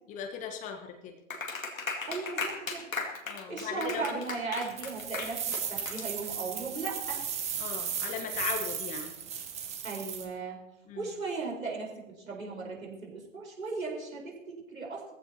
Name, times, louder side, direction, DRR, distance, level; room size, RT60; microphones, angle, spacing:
voice 1, 0.1-1.1 3.2-4.0 7.6-9.1 10.9-11.1, left 7 dB, 20° left, 4 dB, 1.2 m, -38 dB
Clapping, 1.3-6.6, left 4 dB, 75° left, 2.2 m, -37 dB
voice 2, 2.1-2.8 3.5-7.2 9.8-10.6 11.0-15.1, right 4 dB, 80° right, -1 dB, 4.4 m, -37 dB
sound 1, 4.7-10.2, right 8 dB, 15° right, 1.3 m, -36 dB
20.5 x 15.0 x 2.9 m, 0.93 s
figure-of-eight pair, 115°, 41 cm